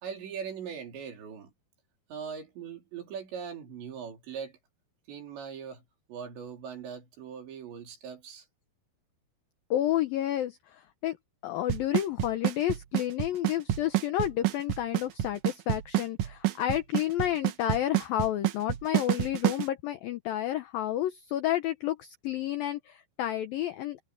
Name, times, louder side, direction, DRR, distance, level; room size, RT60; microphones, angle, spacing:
voice 1, 0.0-1.5 2.1-4.6 5.1-5.8 6.1-8.5, right 7 dB, 70° right, 6.0 m, -40 dB
voice 2, 9.7-10.6 11.0-11.2 11.4-24.0, left 12 dB, 80° left, 2.1 m, -30 dB
Drum kit / Snare drum / Bass drum, 11.7-19.7, right 15 dB, 85° right, 1.8 m, -27 dB
omnidirectional pair, 5.4 m